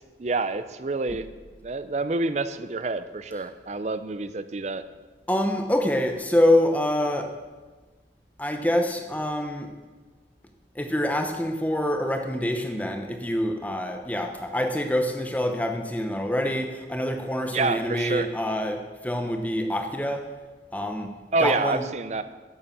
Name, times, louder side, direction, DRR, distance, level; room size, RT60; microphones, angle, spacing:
voice 1, 0.2-1.3 1.6-4.8 17.5-18.3 21.3-22.2, right 3 dB, 40° right, 12 dB, 0.5 m, -27 dB
voice 2, 5.3-7.4 8.4-9.7 10.8-20.3 20.7-21.1 21.4-21.8, left 1 dB, 10° left, 5 dB, 0.8 m, -26 dB
10.5 x 6.9 x 7.3 m, 1.3 s
head